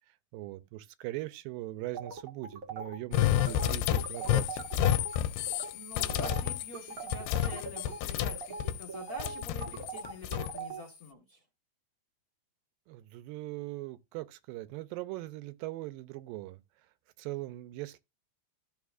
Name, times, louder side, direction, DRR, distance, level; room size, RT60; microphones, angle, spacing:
voice 1, 0.3-4.8 12.9-16.6 17.2-18.0, right 17 dB, 85° right, 2.4 m, -40 dB
sound 1, 1.9-5.2 5.5-5.7 6.0-10.8, right 5 dB, 45° right, 1.0 m, -41 dB
sound 2, 3.1-8.9 9.2-10.6, left 12 dB, 90° left, 2.3 m, -30 dB
voice 2, 5.4-11.4, left 1 dB, 40° left, 1.4 m, -47 dB
13.0 x 6.5 x 2.5 m
omnidirectional pair, 3.9 m